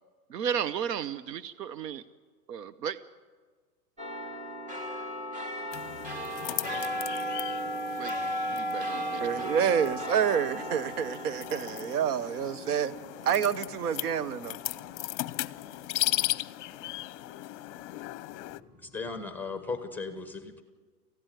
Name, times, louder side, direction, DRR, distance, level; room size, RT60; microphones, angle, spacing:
voice 1, 0.3-2.0 2.5-3.0 8.0-8.1 8.5-9.5, right 8 dB, 85° right, 1.0 m, -34 dB
sound 1, 4.0-14.7 15.2-15.3, equal, 15° right, 2.6 m, -36 dB
sound 2, 5.7-18.6, left 16 dB, 45° left, 0.8 m, -37 dB
voice 2, 9.2-12.9 13.2-14.6, right 8 dB, 70° right, 1.2 m, -28 dB
voice 3, 18.8-20.6, left 4 dB, 5° left, 1.2 m, -37 dB
27.0 x 15.5 x 9.4 m
hypercardioid pair, 135°, 48 cm